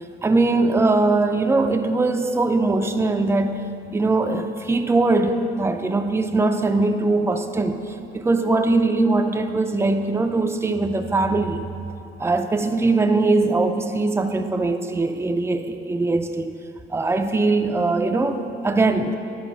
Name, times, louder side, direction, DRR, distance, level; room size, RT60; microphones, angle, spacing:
voice 1, 0.0-11.7 12.2-16.5 16.9-19.2, right 3 dB, 10° right, 6 dB, 0.5 m, -21 dB
12.0 x 4.5 x 6.1 m, 2.8 s
cardioid pair, 90°, 20 cm